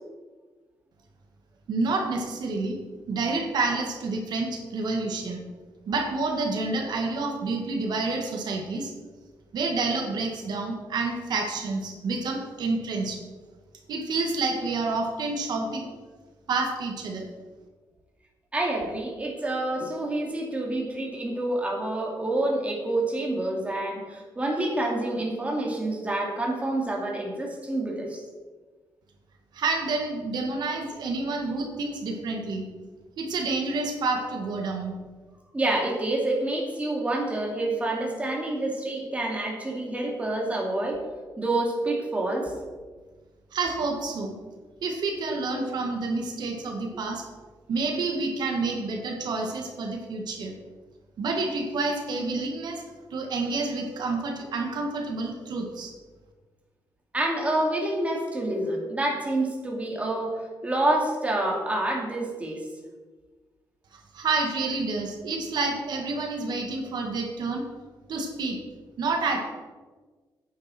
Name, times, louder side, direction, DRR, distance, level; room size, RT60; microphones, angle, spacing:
voice 1, 1.7-2.8 3.1-5.4 5.9-8.9 9.5-13.2 13.9-15.9 16.5-17.3 29.5-32.7 33.2-35.0 43.5-44.3 44.8-47.3 47.7-50.5 51.2-52.8 53.1-55.9 63.9-67.6 68.1-68.6 69.0-69.4, right 3 dB, 70° right, 2 dB, 1.7 m, -29 dB
voice 2, 18.5-28.2 35.5-41.0 41.4-42.5 57.1-62.6, right 2 dB, 20° right, -1 dB, 2.6 m, -28 dB
10.5 x 9.6 x 4.3 m, 1.4 s
cardioid pair, 110°, 8 cm